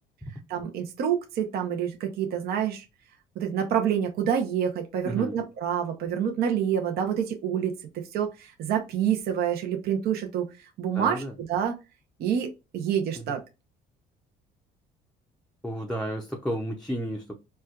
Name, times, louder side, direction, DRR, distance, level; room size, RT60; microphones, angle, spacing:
voice 1, 0.5-2.8 3.4-7.7 8.1-10.5 10.8-11.2 11.5-11.8 12.2-13.4, right 8 dB, 70° right, 0.7 m, -27 dB
voice 2, 5.1-5.4 10.9-11.3 13.1-13.4 15.6-17.3, right 1 dB, 5° left, 0.5 m, -32 dB
4.2 x 2.3 x 2.3 m
cardioid pair, 110°, 17 cm